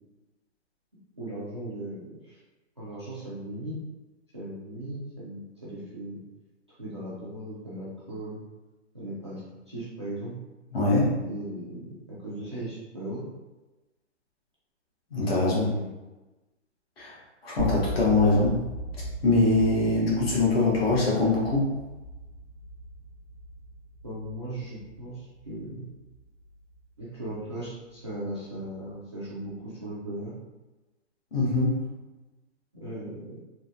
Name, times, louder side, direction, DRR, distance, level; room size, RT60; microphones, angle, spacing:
voice 1, 1.2-2.4 2.8-3.8 4.3-6.2 6.8-8.4 8.9-10.3 11.2-13.2 15.7-15.9 24.0-25.8 27.0-30.3 32.8-33.4, right 1 dB, 25° right, -9 dB, 0.4 m, -37 dB
voice 2, 10.7-11.2 15.1-15.7 17.0-17.2 17.4-18.7 19.2-21.7 31.3-31.9, left 2 dB, 50° left, -5 dB, 1.2 m, -23 dB
sound 1, 17.6-27.6, right 1 dB, 75° right, 0.6 m, -38 dB
3.4 x 2.2 x 2.6 m, 1.1 s
hypercardioid pair, 160°, 37 cm